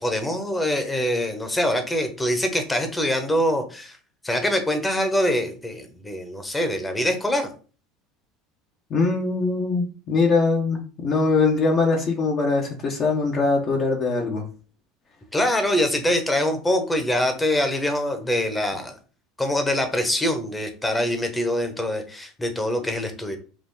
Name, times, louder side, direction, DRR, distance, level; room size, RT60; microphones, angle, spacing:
voice 1, 0.0-4.0 4.2-7.5 15.3-18.9 19.4-23.4, left 1 dB, 10° left, 6 dB, 1.1 m, -24 dB
voice 2, 8.9-14.4, left 3 dB, 45° left, -1 dB, 1.2 m, -22 dB
4.9 x 2.5 x 3.9 m, 0.38 s
supercardioid pair, 100°, 0 cm